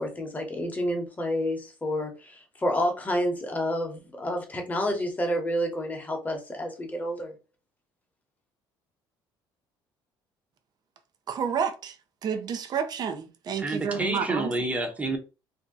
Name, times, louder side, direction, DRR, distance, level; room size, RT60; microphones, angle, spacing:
voice 1, 0.0-7.3, equal, 15° left, 1.1 m, -29 dB
voice 2, 11.3-11.9 12.2-14.5, right 7 dB, 50° right, 0.6 m, -30 dB
voice 3, 13.6-15.2, right 2 dB, 15° right, 0.9 m, -29 dB
2.7 x 2.2 x 3.7 m
cardioid pair, 100°, 9 cm